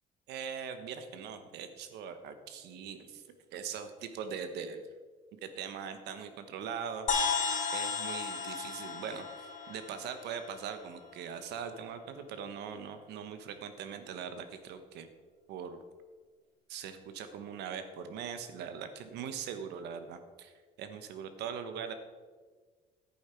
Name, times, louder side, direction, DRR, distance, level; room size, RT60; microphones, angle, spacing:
voice 1, 0.3-3.2 3.5-4.8 5.3-7.1 7.7-15.1 15.5-15.8 16.7-20.5 20.8-21.9, right 7 dB, 80° right, 9 dB, 1.2 m, -41 dB
sound 1, 7.1-10.8, left 5 dB, 50° left, 1.4 m, -34 dB
10.5 x 8.8 x 4.5 m, 1.5 s
cardioid pair, 110°, 17 cm